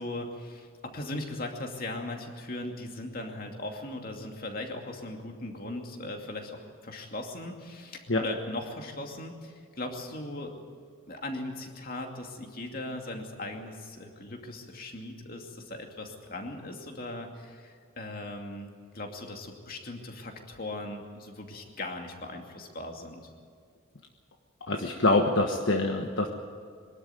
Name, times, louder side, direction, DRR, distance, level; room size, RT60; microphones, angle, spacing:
voice 1, 0.0-10.5 11.1-23.3, left 2 dB, 45° left, 2 dB, 2.6 m, -39 dB
voice 2, 24.7-26.3, left 2 dB, 65° left, 3 dB, 1.3 m, -25 dB
23.0 x 13.0 x 9.2 m, 2.2 s
head